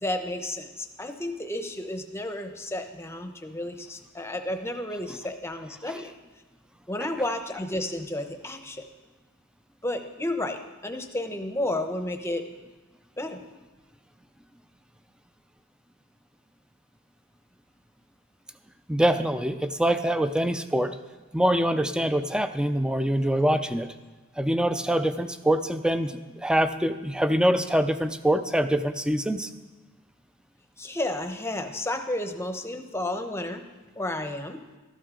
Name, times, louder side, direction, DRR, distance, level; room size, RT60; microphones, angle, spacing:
voice 1, 0.0-6.1 6.9-8.8 9.8-12.4 13.2-13.4 30.8-33.6 34.0-34.6, left 1 dB, 10° left, 6 dB, 0.8 m, -32 dB
voice 2, 18.9-20.9 21.3-23.9 24.4-29.5, right 1 dB, 5° right, 10 dB, 0.4 m, -24 dB
13.0 x 12.0 x 3.8 m, 1.2 s
head